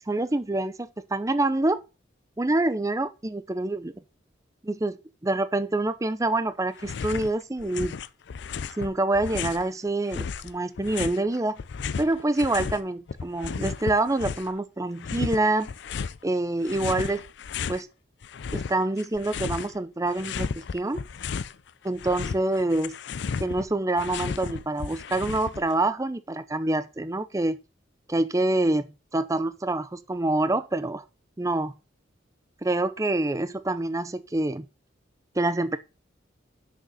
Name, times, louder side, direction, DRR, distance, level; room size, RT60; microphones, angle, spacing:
voice 1, 0.1-1.8 2.4-3.9 4.6-5.0 5.2-7.9 8.8-11.6 12.0-15.7 16.2-17.2 17.7-17.9 18.5-20.5 20.7-21.0 21.8-23.0 23.4-27.6 28.1-28.9 29.1-31.0 31.4-31.7 32.6-34.7 35.4-35.8, right 2 dB, 15° right, 0.5 m, -26 dB
sound 1, 6.8-7.3 7.6-9.7 10.1-12.8 13.1-14.6 15.0-16.2 16.6-17.8 18.2-19.8 20.1-21.6 21.9-25.7, left 5 dB, 60° left, 0.4 m, -34 dB
6.5 x 6.4 x 6.4 m
head